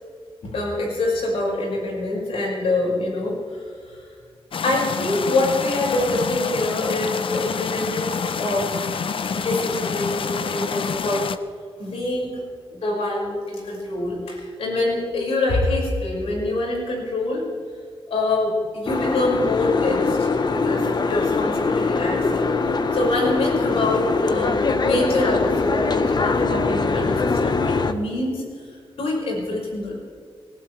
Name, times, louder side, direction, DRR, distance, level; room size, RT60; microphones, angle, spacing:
voice 1, 0.4-3.7 4.6-8.9 9.3-11.3 11.8-12.4 12.7-17.4 18.1-22.5 22.9-27.5 27.9-28.4 29.0-29.9, left 2 dB, 90° left, -3 dB, 5.6 m, -25 dB
sound 1, 4.5-11.4, left 6 dB, 65° left, 0.8 m, -27 dB
Boat Water vehicle, 18.9-27.9, left 4 dB, 45° left, 1.1 m, -22 dB
20.5 x 19.5 x 3.3 m, 2.1 s
cardioid pair, 90°, 10 cm